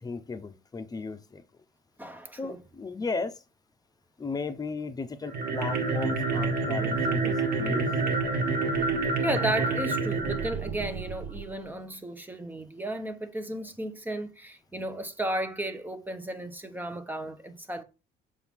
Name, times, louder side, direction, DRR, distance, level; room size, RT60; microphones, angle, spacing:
voice 1, 0.0-1.4 2.4-3.3 4.2-7.9, left 4 dB, 20° left, 0.9 m, -35 dB
voice 2, 2.0-2.6 9.2-17.8, right 1 dB, 10° right, 0.9 m, -34 dB
sound 1, 5.2-11.5, right 3 dB, 65° right, 1.8 m, -28 dB
7.1 x 4.5 x 3.7 m
cardioid pair, 110°, 17 cm